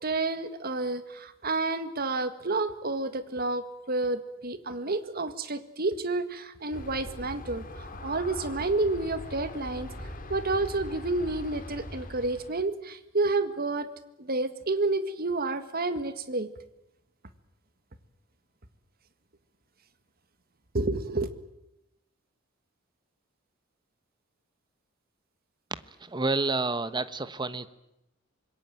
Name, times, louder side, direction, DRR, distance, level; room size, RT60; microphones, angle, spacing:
voice 1, 0.0-9.9 10.3-13.9 14.2-16.5 20.7-21.3, right 2 dB, 50° right, 11 dB, 1.9 m, -30 dB
Aircraft, 6.7-12.5, left 1 dB, 45° left, 2.6 m, -41 dB
voice 2, 25.7-27.7, right 3 dB, 20° right, 13 dB, 1.2 m, -30 dB
25.5 x 21.5 x 9.1 m, 0.88 s
head